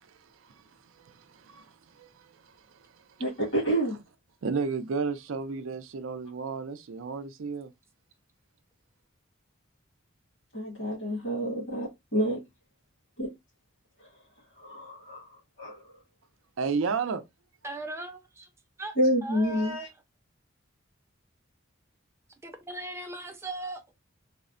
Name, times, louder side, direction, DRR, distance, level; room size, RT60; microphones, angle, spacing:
voice 1, 0.9-2.4 2.7-3.0 4.4-7.7 16.6-17.2, right 5 dB, 80° right, 0.4 m, -33 dB
voice 2, 3.2-4.0 10.5-12.4 13.2-13.3 14.6-16.0 18.9-19.9, equal, 60° left, 1.5 m, -28 dB
voice 3, 17.6-18.5 18.8-18.9 19.2-19.9 22.4-23.9, right 2 dB, 15° right, 0.5 m, -38 dB
3.5 x 2.1 x 2.4 m
head